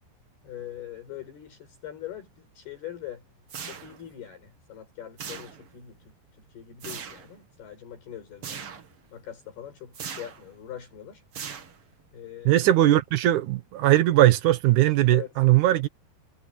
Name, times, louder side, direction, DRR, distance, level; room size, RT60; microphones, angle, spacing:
voice 1, 0.4-3.3 3.7-8.7 9.1-11.2 12.1-12.8 15.1-15.3, left 11 dB, 60° left, 7.4 m, -42 dB
sound 1, 3.5-4.2 5.2-5.8 6.8-7.3 8.4-8.9 9.9-10.5 11.3-12.0, right 7 dB, 50° right, 1.8 m, -39 dB
voice 2, 12.4-15.9, right 14 dB, 75° right, 1.8 m, -20 dB
omnidirectional pair, 5.1 m